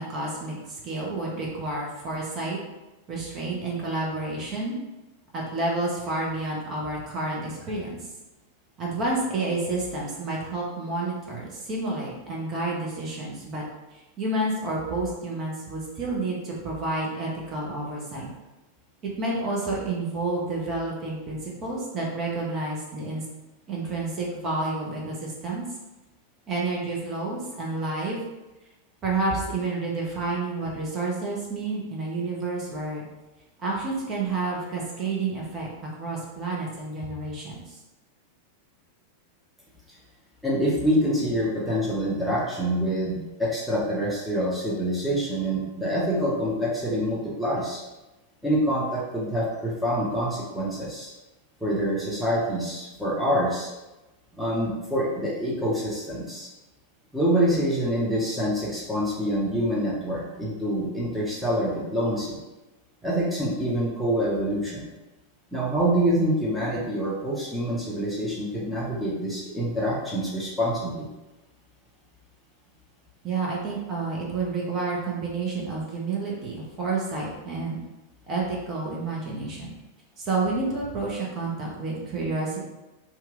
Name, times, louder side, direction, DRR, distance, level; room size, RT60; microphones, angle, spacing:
voice 1, 0.0-2.6 3.1-4.8 5.3-8.1 8.8-13.6 14.2-18.3 19.2-23.2 23.7-25.6 26.5-28.2 29.0-33.1 33.6-35.7 36.0-37.8 73.2-77.8 78.3-79.7 80.2-82.6, right 3 dB, 30° right, -4 dB, 0.8 m, -29 dB
voice 2, 40.4-47.8 48.4-51.1 51.6-53.7 54.4-56.5 57.1-62.4 63.0-64.9 65.5-71.1, equal, ahead, -7 dB, 0.8 m, -26 dB
2.9 x 2.3 x 3.7 m, 1.1 s
figure-of-eight pair, 90°, 0 cm